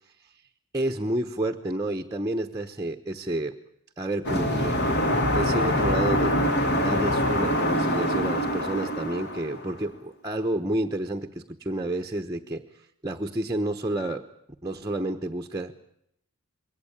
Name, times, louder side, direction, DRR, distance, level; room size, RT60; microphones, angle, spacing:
voice 1, 0.7-3.5 4.0-4.8 5.3-6.4 6.7-12.6 13.0-14.2 14.6-15.8, right 1 dB, 15° right, 4 dB, 1.0 m, -30 dB
sound 1, 4.2-9.8, equal, 50° left, 3.0 m, -24 dB
22.5 x 17.5 x 8.8 m, 0.75 s
head